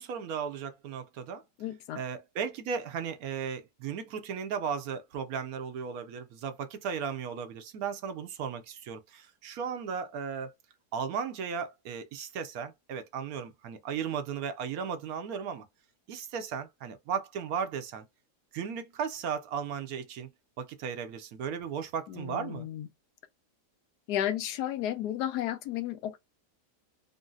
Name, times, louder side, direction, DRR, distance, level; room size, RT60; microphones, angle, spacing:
voice 1, 0.0-1.4 1.9-10.5 10.9-15.7 16.1-18.0 18.5-20.3 20.6-22.7, right 7 dB, 65° right, 1.1 m, -35 dB
voice 2, 1.6-2.0 22.1-22.9 24.1-26.2, left 11 dB, 75° left, 1.1 m, -33 dB
3.9 x 2.1 x 2.4 m
omnidirectional pair, 1.8 m